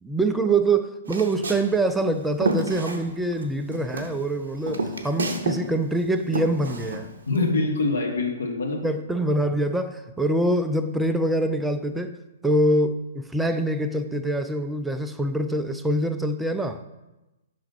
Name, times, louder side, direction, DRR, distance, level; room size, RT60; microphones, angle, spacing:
voice 1, 0.0-7.1 8.8-12.2 12.4-16.8, right 1 dB, 5° right, 8 dB, 0.3 m, -24 dB
Walk footsteps, 1.0-3.5 3.7-5.6 5.9-7.4, right 2 dB, 60° right, 0.7 m, -29 dB
voice 2, 7.3-8.8, left 3 dB, 65° left, 0 dB, 1.2 m, -24 dB
5.5 x 3.4 x 5.5 m, 1.0 s
figure-of-eight pair, 115°, 0 cm